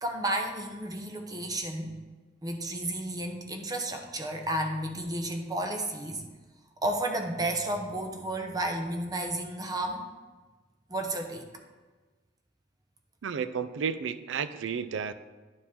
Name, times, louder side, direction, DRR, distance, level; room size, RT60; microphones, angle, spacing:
voice 1, 0.0-2.0 2.4-6.2 6.8-10.0 10.9-11.4, right 1 dB, 20° right, 4 dB, 0.8 m, -32 dB
voice 2, 13.2-15.1, right 6 dB, 80° right, 13 dB, 0.4 m, -32 dB
10.0 x 4.7 x 3.6 m, 1.3 s
head